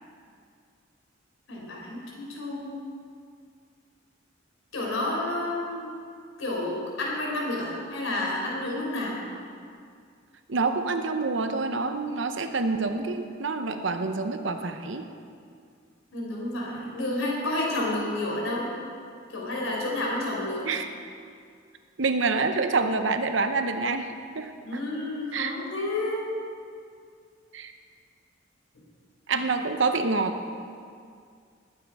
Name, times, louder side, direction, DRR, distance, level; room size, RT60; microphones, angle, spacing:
voice 1, 1.5-2.7 4.7-5.9 6.4-9.2 16.1-18.7 19.3-20.7 24.6-26.2, left 1 dB, 85° left, -3 dB, 4.0 m, -30 dB
voice 2, 10.5-15.1 20.6-20.9 22.0-24.8 25.3-25.6 27.5-27.7 29.3-30.4, right 3 dB, 70° right, 7 dB, 0.9 m, -27 dB
20.0 x 8.7 x 4.8 m, 2.3 s
head